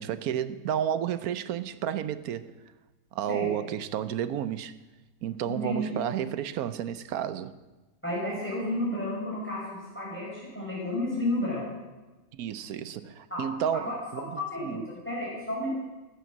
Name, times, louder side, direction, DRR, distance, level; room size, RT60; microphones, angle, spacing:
voice 1, 0.0-2.5 3.1-4.7 5.2-7.5 12.3-14.8, right 9 dB, 75° right, 1.2 m, -31 dB
voice 2, 5.5-5.9 8.0-11.6 13.3-13.4 13.7-15.7, left 1 dB, 5° left, 5.0 m, -32 dB
14.5 x 9.1 x 7.3 m
omnidirectional pair, 1.6 m